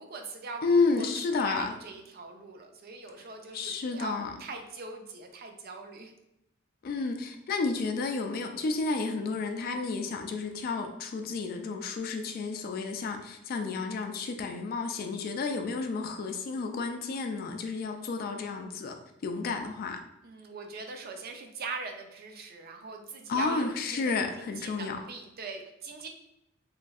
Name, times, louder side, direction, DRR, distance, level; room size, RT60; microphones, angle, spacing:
voice 1, 0.0-6.1 20.2-26.1, right 4 dB, 50° right, 4 dB, 0.4 m, -41 dB
voice 2, 0.6-1.7 3.5-4.3 6.8-19.0 19.2-20.0 23.3-25.0, left 4 dB, 50° left, 5 dB, 0.3 m, -31 dB
3.1 x 2.6 x 2.3 m, 0.83 s
head